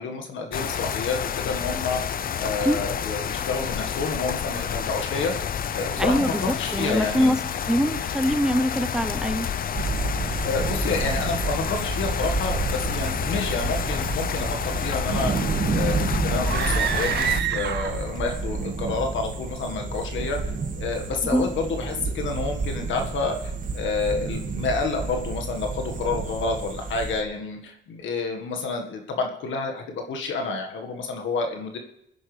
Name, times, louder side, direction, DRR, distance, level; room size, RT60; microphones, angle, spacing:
voice 1, 0.0-2.0 2.4-5.3 5.7-7.4 10.4-15.3 15.7-20.4 20.8-31.8, left 4 dB, 75° left, 3 dB, 1.7 m, -29 dB
sound 1, 0.5-17.4, left 8 dB, 45° left, 0.6 m, -29 dB
voice 2, 6.0-7.4 7.7-9.5 21.3-21.4, equal, 5° right, 11 dB, 0.8 m, -23 dB
sound 2, 9.7-27.2, right 4 dB, 40° right, 1.8 m, -30 dB
sound 3, 16.4-18.2, right 10 dB, 60° right, 0.6 m, -27 dB
28.5 x 10.0 x 3.4 m, 0.81 s
cardioid pair, 90°, 20 cm